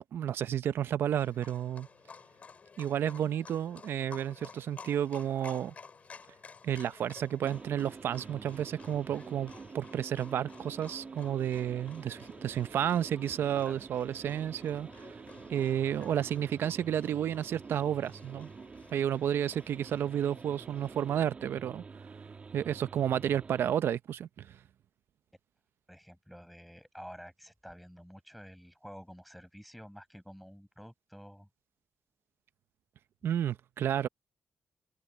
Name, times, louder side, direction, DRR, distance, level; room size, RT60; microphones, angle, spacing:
voice 1, 0.0-1.9 2.8-5.7 6.6-14.9 15.5-18.5 18.9-21.8 22.5-24.6 33.2-34.1, right 10 dB, 90° right, 0.6 m, -31 dB
Livestock farm animals working animals, 1.2-21.2, left 5 dB, 40° left, 6.8 m, -54 dB
sound 1, 7.4-23.8, right 4 dB, 35° right, 1.8 m, -48 dB
voice 2, 25.9-31.5, equal, ahead, 7.7 m, -50 dB
open air
wide cardioid pair, 170°, 4 cm